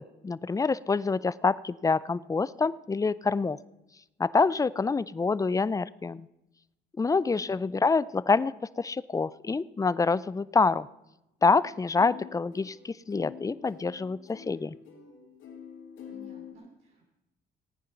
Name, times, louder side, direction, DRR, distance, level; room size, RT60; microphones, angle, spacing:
voice 1, 0.0-3.6 4.2-6.3 7.0-10.9 11.4-14.8, left 4 dB, 15° left, 18 dB, 0.5 m, -26 dB
voice 2, 7.2-7.6 16.1-17.1, right 1 dB, 80° right, -2 dB, 3.4 m, -54 dB
sound 1, 11.4-16.5, left 8 dB, 80° left, 2.2 m, -47 dB
17.0 x 9.4 x 5.8 m, 0.92 s
cardioid pair, 90°, 20 cm